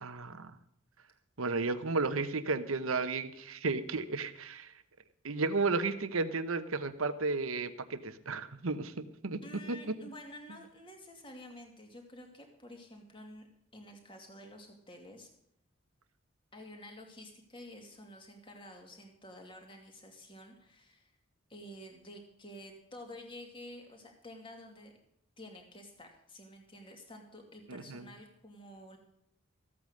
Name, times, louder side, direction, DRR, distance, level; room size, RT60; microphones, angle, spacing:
voice 1, 0.0-0.5 1.4-4.7 5.2-9.4 9.7-9.8 27.7-28.0, right 3 dB, 85° right, 12 dB, 1.0 m, -33 dB
voice 2, 9.4-13.5 13.7-15.3 16.5-21.1 21.5-24.9 25.4-29.0, left 1 dB, 25° left, 2 dB, 2.5 m, -50 dB
15.0 x 8.5 x 6.6 m, 0.75 s
head